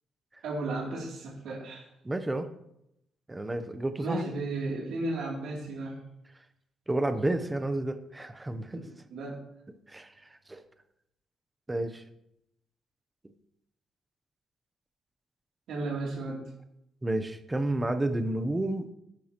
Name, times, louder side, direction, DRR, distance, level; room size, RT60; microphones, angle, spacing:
voice 1, 0.4-1.8 4.0-6.0 8.7-9.4 15.7-16.4, right 2 dB, 80° right, -4 dB, 2.8 m, -34 dB
voice 2, 2.0-2.5 3.3-4.2 6.9-8.8 9.9-10.6 11.7-12.0 17.0-18.9, right 1 dB, 10° right, 9 dB, 0.7 m, -31 dB
11.0 x 10.5 x 2.9 m, 0.82 s
cardioid pair, 165°, 0 cm